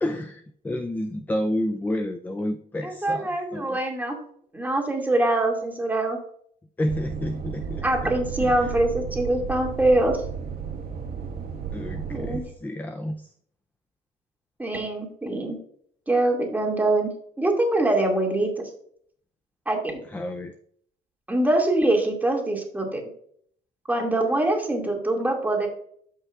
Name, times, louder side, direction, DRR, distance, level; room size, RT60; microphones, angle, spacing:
voice 1, 0.0-3.8 6.8-7.9 8.4-8.5 11.7-13.3 20.1-20.5, left 1 dB, 10° left, 8 dB, 0.5 m, -30 dB
voice 2, 2.8-4.2 4.5-6.2 7.8-10.2 12.1-12.4 14.6-15.6 16.1-17.1 17.4-18.5 19.7-20.0 21.3-23.0 23.9-25.7, right 1 dB, 10° right, 1 dB, 2.2 m, -23 dB
sound 1, 6.9-12.4, right 7 dB, 60° right, 1.7 m, -33 dB
12.5 x 5.5 x 2.4 m, 0.62 s
cardioid pair, 110°, 17 cm